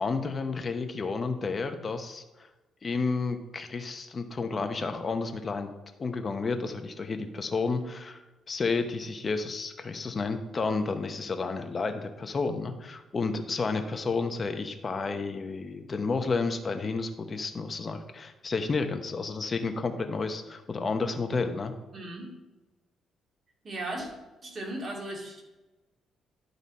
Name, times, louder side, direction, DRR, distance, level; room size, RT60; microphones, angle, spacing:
voice 1, 0.0-2.5 2.8-5.7 6.0-8.2 8.5-21.7, left 4 dB, 35° left, 7 dB, 0.9 m, -31 dB
voice 2, 21.9-22.3 23.6-24.1 24.4-25.4, right 1 dB, 40° right, -1 dB, 2.4 m, -36 dB
11.0 x 4.0 x 4.1 m, 1.1 s
cardioid pair, 95°, 0 cm